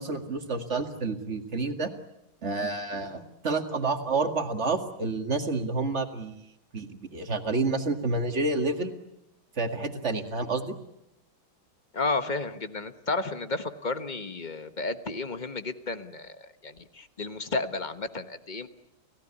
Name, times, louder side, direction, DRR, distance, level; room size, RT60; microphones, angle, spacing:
voice 1, 0.0-1.9 2.4-6.4 6.7-8.9 9.6-10.8, right 3 dB, 35° right, 6 dB, 2.2 m, -29 dB
voice 2, 11.9-18.7, left 3 dB, 30° left, 10 dB, 1.1 m, -32 dB
29.5 x 17.5 x 10.0 m, 0.83 s
omnidirectional pair, 2.1 m